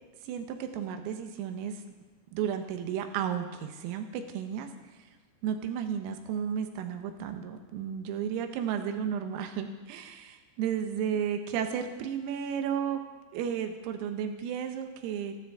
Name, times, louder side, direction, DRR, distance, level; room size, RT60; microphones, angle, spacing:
voice 1, 0.2-1.8 2.3-4.7 5.4-13.0 13.3-15.5, right 8 dB, 85° right, 6 dB, 3.9 m, -33 dB
29.0 x 12.5 x 3.7 m, 1.2 s
omnidirectional pair, 5.9 m